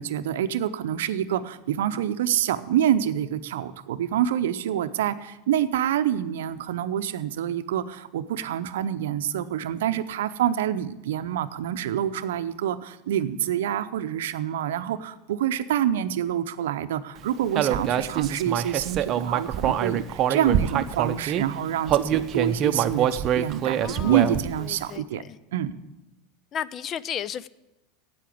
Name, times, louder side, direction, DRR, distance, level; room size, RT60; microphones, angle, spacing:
voice 1, 0.0-25.2 25.5-25.7, right 10 dB, 75° right, 12 dB, 0.6 m, -27 dB
Human voice, 17.5-21.4 21.9-24.6, right 10 dB, 40° right, 0.7 m, -25 dB
voice 2, 23.8-25.4 26.5-27.5, left 9 dB, 40° left, 19 dB, 0.5 m, -34 dB
8.6 x 8.4 x 9.2 m, 0.97 s
hypercardioid pair, 95°, 0 cm